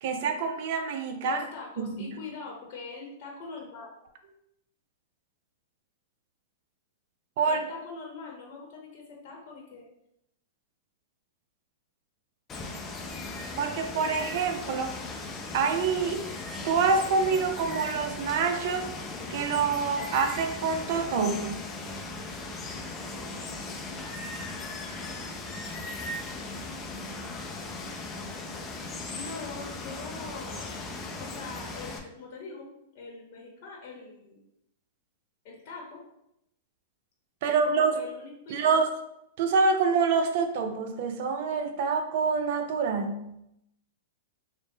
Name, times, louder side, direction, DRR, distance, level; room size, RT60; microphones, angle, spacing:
voice 1, 0.0-1.4 1.8-2.2 7.4-7.7 13.6-14.9 15.5-16.2 16.6-18.9 19.3-21.6 37.4-38.0 38.5-38.9 39.4-43.3, right 5 dB, 55° right, 6 dB, 0.5 m, -26 dB
voice 2, 1.2-3.9 7.4-9.9 29.1-30.7 31.2-32.7 32.9-34.4 35.4-36.0 37.4-38.8, left 4 dB, 45° left, -2 dB, 0.8 m, -42 dB
Water, 12.5-32.0, left 3 dB, 20° left, 0.4 m, -38 dB
3.7 x 2.0 x 3.5 m, 0.82 s
hypercardioid pair, 140°, 0 cm